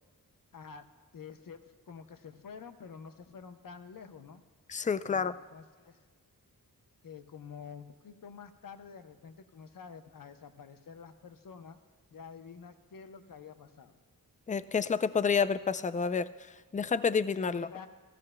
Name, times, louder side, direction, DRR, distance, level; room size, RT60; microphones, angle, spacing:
voice 1, 0.5-0.9 1.1-4.4 5.1-6.0 7.0-11.8 12.1-14.0 17.5-17.9, left 6 dB, 65° left, 8 dB, 0.7 m, -48 dB
voice 2, 4.7-5.3 14.5-16.3 16.7-17.7, left 5 dB, 20° left, 14 dB, 0.3 m, -29 dB
16.5 x 14.0 x 2.2 m, 1.4 s
wide cardioid pair, 65°, 36 cm